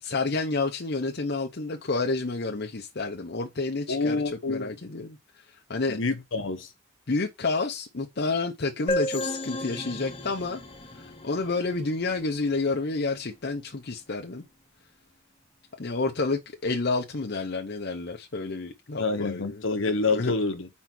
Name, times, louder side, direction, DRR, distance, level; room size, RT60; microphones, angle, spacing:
voice 1, 0.0-4.2 4.5-5.2 5.5-6.0 7.1-10.6 10.9-14.4 15.8-19.7 20.1-20.3, left 3 dB, 50° left, 0.8 m, -29 dB
voice 2, 3.9-4.7 5.9-6.7 19.0-20.7, left 3 dB, 70° left, 1.1 m, -27 dB
sound 1, 8.9-12.4, left 1 dB, 25° left, 1.0 m, -33 dB
4.5 x 4.4 x 5.8 m
head